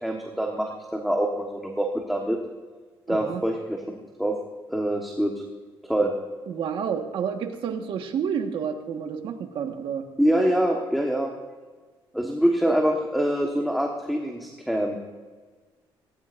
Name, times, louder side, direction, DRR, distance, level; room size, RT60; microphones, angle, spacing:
voice 1, 0.0-2.4 3.1-3.8 4.2-4.3 4.7-5.3 5.8-6.1 10.2-11.3 12.1-15.0, right 1 dB, ahead, 0 dB, 1.4 m, -25 dB
voice 2, 3.1-3.4 6.5-10.0, right 7 dB, 70° right, 4 dB, 1.6 m, -30 dB
19.0 x 17.0 x 2.6 m, 1.4 s
cardioid pair, 130°, 9 cm